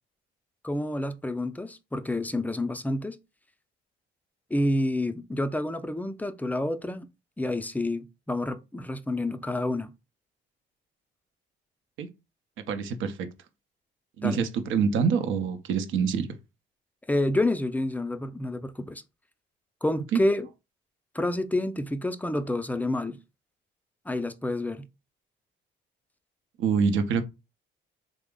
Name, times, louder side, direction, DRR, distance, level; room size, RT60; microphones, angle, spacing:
voice 1, 0.6-3.2 4.5-7.1 7.4-9.9 14.2-14.4 17.1-19.0 19.8-20.5 21.1-23.2 24.1-24.9, left 1 dB, 10° left, 0.4 m, -28 dB
voice 2, 12.7-13.3 14.2-16.3 20.1-20.2 26.6-27.3, right 6 dB, 85° right, 0.6 m, -25 dB
3.3 x 2.0 x 3.6 m
cardioid pair, 90°, 20 cm